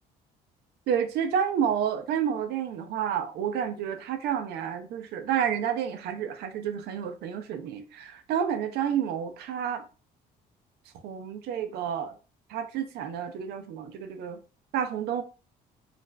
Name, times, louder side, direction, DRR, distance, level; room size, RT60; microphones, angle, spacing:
voice 1, 0.9-9.8 11.0-12.1 12.5-14.4 14.7-15.2, right 8 dB, 75° right, 0.5 m, -30 dB
3.2 x 2.4 x 2.2 m
cardioid pair, 110°, 17 cm